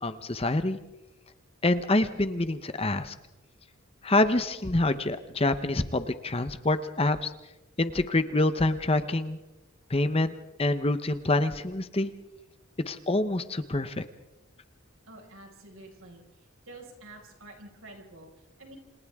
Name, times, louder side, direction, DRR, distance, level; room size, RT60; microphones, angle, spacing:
voice 1, 0.0-0.8 1.6-3.1 4.0-7.3 7.8-9.4 9.9-10.3 10.6-12.1 12.9-14.0, left 2 dB, 25° left, 11 dB, 0.9 m, -26 dB
voice 2, 15.0-18.8, right 2 dB, 70° right, 1 dB, 5.5 m, -49 dB
29.5 x 27.5 x 3.6 m, 0.98 s
head